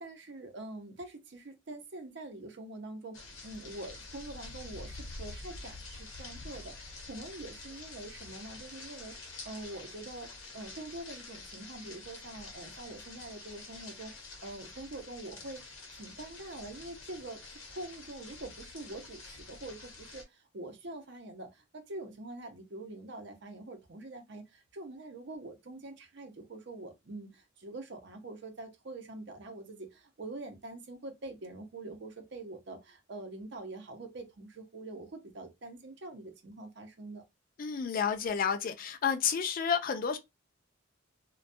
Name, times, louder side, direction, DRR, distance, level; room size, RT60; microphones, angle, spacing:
voice 1, 0.0-37.2, right 2 dB, 60° right, 0.6 m, -45 dB
sound 1, 3.1-20.2, left 3 dB, 90° left, 0.8 m, -47 dB
voice 2, 37.6-40.2, left 7 dB, 45° left, 0.3 m, -30 dB
2.2 x 2.1 x 2.6 m
head